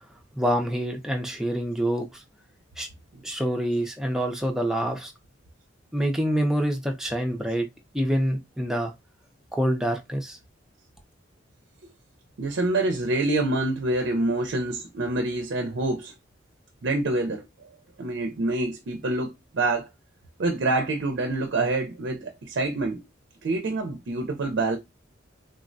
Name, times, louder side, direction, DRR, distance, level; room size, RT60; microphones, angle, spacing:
voice 1, 0.4-2.2 2.8-2.9 3.2-5.1 5.9-7.7 7.9-8.9 9.5-10.4, equal, 5° right, 0.5 m, -26 dB
voice 2, 12.4-16.1 16.8-17.7 18.0-19.9 20.4-23.0 23.4-24.8, right 2 dB, 65° right, 0.4 m, -26 dB
3.4 x 2.1 x 2.5 m
head